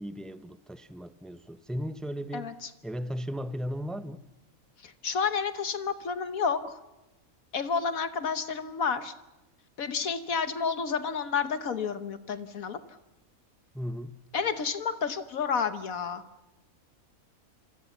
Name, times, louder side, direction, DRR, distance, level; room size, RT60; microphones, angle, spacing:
voice 1, 0.0-2.5 2.8-4.2 13.7-14.2, equal, ahead, 0.4 m, -36 dB
voice 2, 2.3-2.7 4.8-6.8 7.5-9.1 9.8-12.8 14.3-16.2, left 6 dB, 75° left, 1.5 m, -30 dB
27.5 x 26.0 x 7.2 m
omnidirectional pair, 1.5 m